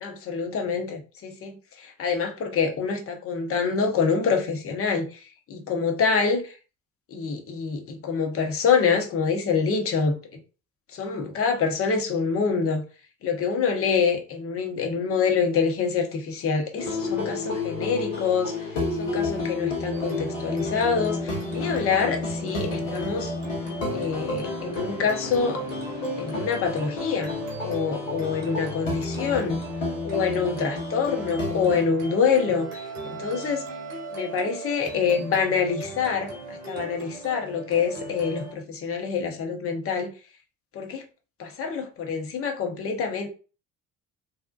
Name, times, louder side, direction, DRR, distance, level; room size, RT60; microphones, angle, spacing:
voice 1, 0.0-6.6 7.1-10.1 10.9-12.8 13.2-18.5 19.0-23.4 23.9-25.6 26.2-29.6 30.0-33.6 34.1-40.1 40.7-41.0 41.4-43.3, left 5 dB, 35° left, 0.7 m, -26 dB
sound 1, 16.8-31.8, left 3 dB, 75° left, 0.9 m, -31 dB
sound 2, 19.9-38.5, right 2 dB, 80° right, 0.8 m, -39 dB
Wind instrument woodwind instrument, 31.2-35.1, right 6 dB, 35° right, 0.4 m, -40 dB
2.6 x 2.0 x 2.4 m
figure-of-eight pair, 50°, 39 cm